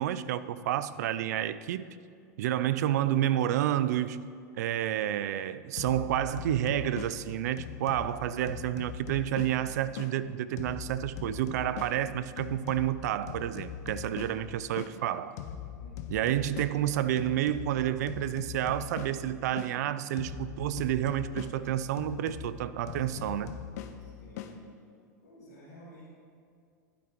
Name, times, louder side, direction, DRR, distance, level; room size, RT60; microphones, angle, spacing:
voice 1, 0.0-2.0 2.4-4.2 4.6-15.4 16.1-23.5, right 12 dB, 75° right, 15 dB, 0.4 m, -30 dB
sound 1, 5.8-10.2 10.6-15.0 15.4-19.8 20.2-24.6, left 9 dB, 70° left, 0.6 m, -41 dB
voice 2, 15.8-16.2 24.0-24.7 25.2-26.1, left 1 dB, 90° left, -10 dB, 2.2 m, -53 dB
12.0 x 8.4 x 3.0 m, 2.3 s
hypercardioid pair, 100°, 9 cm